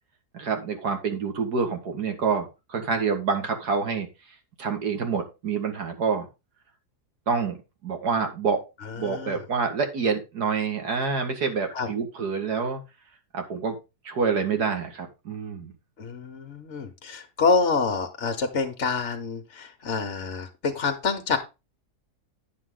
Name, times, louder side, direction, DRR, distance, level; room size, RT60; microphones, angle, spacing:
voice 1, 0.3-4.1 4.6-6.3 7.3-7.6 7.8-8.6 9.0-12.8 13.3-13.8 14.0-15.7, right 5 dB, 80° right, 5 dB, 2.4 m, -27 dB
voice 2, 9.0-9.4 11.7-11.9 16.0-21.4, left 4 dB, 50° left, 4 dB, 1.4 m, -27 dB
9.7 x 7.4 x 3.8 m, 0.27 s
omnidirectional pair, 1.7 m